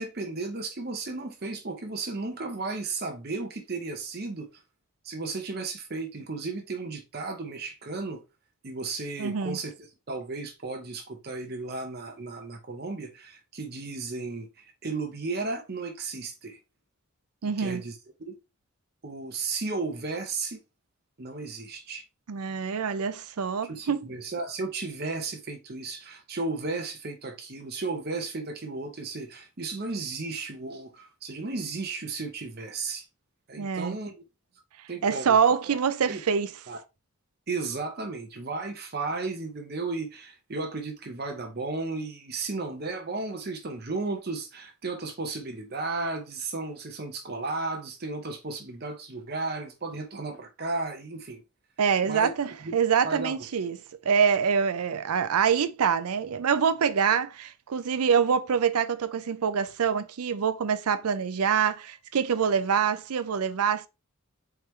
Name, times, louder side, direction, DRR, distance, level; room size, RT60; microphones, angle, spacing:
voice 1, 0.0-4.5 5.0-8.2 8.6-9.7 10.1-16.6 17.4-18.0 18.3-18.4 19.0-20.6 21.2-22.0 23.7-33.1 33.5-34.2 34.9-35.4 35.6-35.8 36.1-36.2 36.7-36.8 37.5-51.4 52.0-52.3 52.6-52.8 53.0-53.4, right 3 dB, 45° right, 0.8 m, -34 dB
voice 2, 9.2-9.6 17.4-17.8 22.3-24.0 33.6-33.9 35.0-36.5 51.8-53.8 54.0-63.9, right 6 dB, 90° right, 0.5 m, -25 dB
4.5 x 3.7 x 3.2 m
head